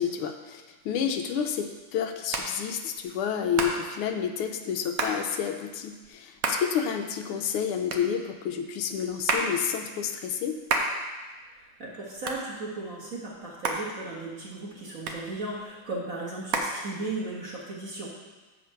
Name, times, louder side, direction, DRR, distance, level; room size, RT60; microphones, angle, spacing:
voice 1, 0.0-10.6, left 8 dB, 85° left, 6 dB, 1.6 m, -30 dB
Hands, 0.8-17.5, right 3 dB, 65° right, 0.8 m, -34 dB
voice 2, 11.5-18.1, right 2 dB, 40° right, -5 dB, 1.8 m, -36 dB
7.6 x 5.1 x 5.6 m, 1.3 s
omnidirectional pair, 2.4 m